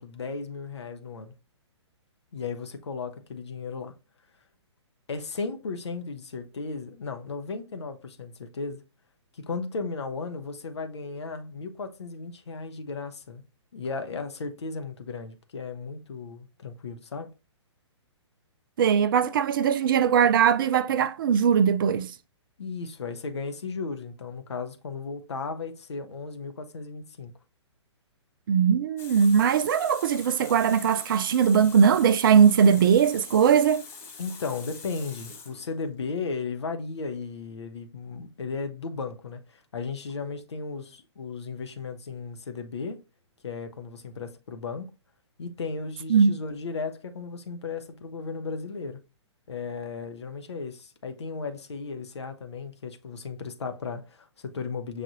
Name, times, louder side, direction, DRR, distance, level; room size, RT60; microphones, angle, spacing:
voice 1, 0.0-1.3 2.3-3.9 5.1-8.8 9.3-13.4 13.7-17.3 22.6-27.3 34.2-43.0 43.4-44.9 45.4-49.0 49.5-55.0, left 4 dB, 65° left, 0.8 m, -35 dB
voice 2, 18.8-22.1 28.5-33.8 46.1-46.3, right 7 dB, 45° right, 0.4 m, -20 dB
Water tap faucet, 29.0-36.0, left 5 dB, 15° left, 0.8 m, -44 dB
6.4 x 2.5 x 2.6 m
figure-of-eight pair, 120°, 15 cm